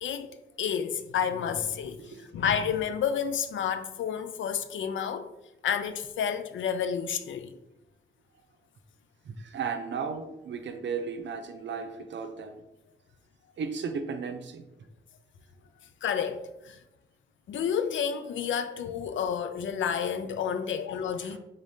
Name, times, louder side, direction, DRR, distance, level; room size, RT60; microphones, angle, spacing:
voice 1, 0.0-5.3 5.6-7.6 16.0-16.8 17.5-21.4, left 7 dB, 70° left, 0.4 m, -30 dB
voice 2, 9.2-12.6 13.6-14.6 21.2-21.4, right 5 dB, 65° right, 0.6 m, -35 dB
3.7 x 3.4 x 2.7 m
cardioid pair, 70°, 20 cm